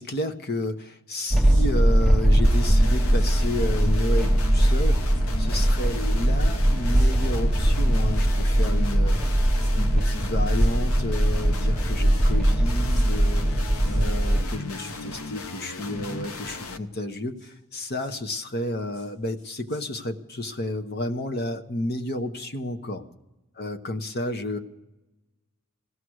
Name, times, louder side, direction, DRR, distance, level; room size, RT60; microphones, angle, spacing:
voice 1, 0.0-5.0 5.4-9.2 9.8-23.0 23.6-24.6, left 1 dB, 50° left, 8 dB, 1.1 m, -31 dB
sound 1, 1.3-1.7 3.0-3.4 5.1-5.2 6.9-7.1 8.0-8.6 9.6-9.7 10.5-10.7 12.0-12.3 12.9-13.1 13.7-14.2 14.8-15.0 17.3-17.5 17.9-18.1 18.9-19.1 19.4-19.8, left 1 dB, 75° left, 7.9 m, -51 dB
sound 2, 1.3-14.4, right 1 dB, ahead, 0.6 m, -21 dB
sound 3, 2.4-16.8, left 3 dB, 90° left, 0.9 m, -37 dB
18.0 x 13.0 x 6.4 m, 1.0 s
head